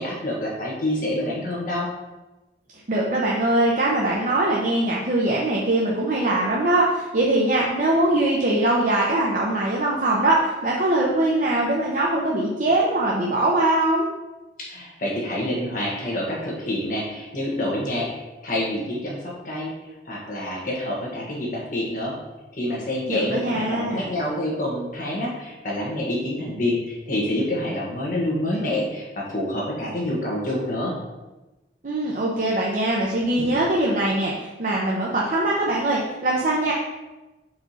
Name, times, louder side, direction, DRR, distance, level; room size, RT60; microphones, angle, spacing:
voice 1, 0.0-1.9 14.6-19.7 20.0-22.1 22.5-30.9, left 1 dB, 50° left, -4 dB, 1.5 m, -27 dB
voice 2, 2.9-14.1 23.1-24.1 31.8-36.7, right 1 dB, 45° right, -3 dB, 0.8 m, -22 dB
4.8 x 4.4 x 5.7 m, 1.1 s
head